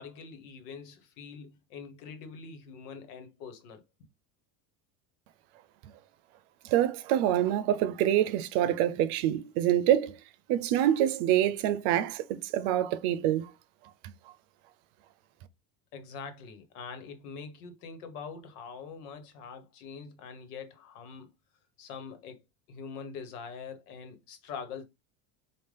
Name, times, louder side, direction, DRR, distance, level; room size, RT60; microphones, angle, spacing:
voice 1, 0.0-3.8 15.9-21.3 21.8-22.4 22.7-24.8, left 5 dB, 90° left, 1.2 m, -44 dB
voice 2, 6.6-10.2 10.5-13.5 14.0-14.1, right 11 dB, 70° right, 0.7 m, -26 dB
5.1 x 2.5 x 3.3 m
supercardioid pair, 125°, 44 cm